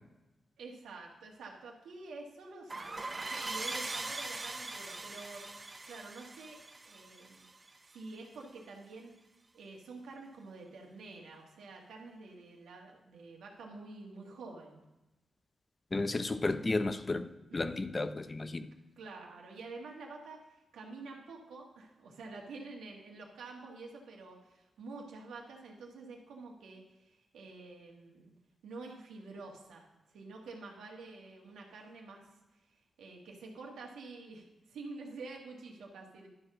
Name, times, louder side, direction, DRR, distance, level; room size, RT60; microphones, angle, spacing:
voice 1, 0.6-9.1 9.5-14.8 17.5-17.7 19.0-28.3 28.6-32.2 32.7-36.3, right 3 dB, 85° right, 1.7 m, -48 dB
sound 1, 2.7-8.0, right 2 dB, 35° right, 0.8 m, -41 dB
voice 2, 15.9-18.7, left 2 dB, 35° left, 0.7 m, -33 dB
11.5 x 4.7 x 6.1 m
supercardioid pair, 45°, 0 cm